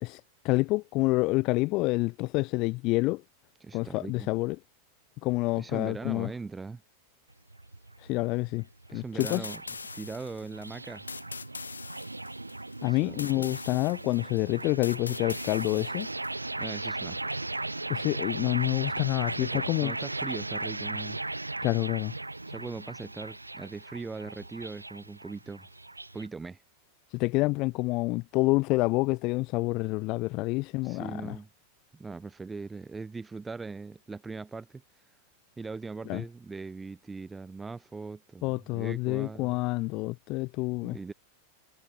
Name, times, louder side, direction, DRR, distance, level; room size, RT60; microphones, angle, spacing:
voice 1, 0.4-3.2 3.7-4.6 5.2-6.3 8.1-8.6 8.9-9.5 12.8-16.1 17.9-19.9 21.6-22.1 27.1-31.4 36.1-36.2 38.4-41.0, left 23 dB, 40° left, 1.3 m, -28 dB
voice 2, 3.6-4.3 5.5-6.8 8.9-9.6 9.9-11.0 12.9-13.6 16.6-17.3 19.4-21.2 22.5-25.7 26.1-26.6 30.8-31.5 31.9-34.8 35.6-39.6 40.8-41.1, right 4 dB, 10° right, 2.7 m, -40 dB
sound 1, 7.3-26.3, right 2 dB, 85° right, 5.2 m, -37 dB
sound 2, 9.2-16.3, left 5 dB, 75° left, 6.1 m, -42 dB
figure-of-eight pair, 90°, 0 cm